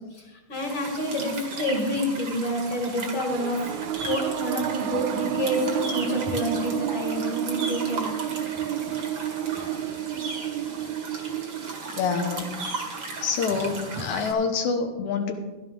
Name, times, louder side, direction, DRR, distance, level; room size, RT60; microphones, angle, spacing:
voice 1, 0.1-3.6 4.0-8.1 9.7-9.8, equal, 50° left, 0 dB, 2.8 m, -28 dB
sound 1, 0.5-14.3, right 3 dB, 45° right, 2.3 m, -36 dB
sound 2, 3.3-14.0, right 12 dB, 80° right, 1.7 m, -31 dB
voice 2, 11.9-12.6 13.2-15.3, left 5 dB, 80° left, 4 dB, 2.4 m, -26 dB
15.0 x 12.0 x 3.8 m, 1.2 s
omnidirectional pair, 3.4 m